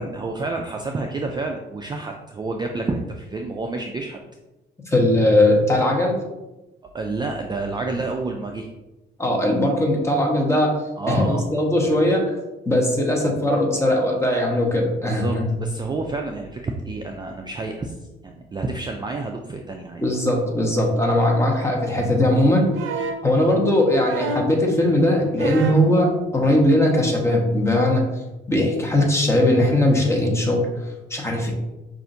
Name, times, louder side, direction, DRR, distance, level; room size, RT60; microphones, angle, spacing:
voice 1, 0.0-4.2 6.8-8.7 11.0-11.4 13.2-13.5 15.0-18.0 18.2-20.0 21.9-22.1, right 3 dB, 20° right, 2 dB, 0.3 m, -29 dB
voice 2, 4.9-6.2 9.2-10.7 11.1-12.3 12.7-15.4 20.0-22.7 23.2-28.0 28.5-30.6 31.1-31.5, left 1 dB, 15° left, 0 dB, 1.0 m, -19 dB
sound 1, 22.7-23.3 24.1-24.6 25.4-25.9 27.1-27.2, right 3 dB, 80° right, 0.5 m, -28 dB
5.5 x 2.5 x 2.6 m, 1.0 s
cardioid pair, 90°, 20 cm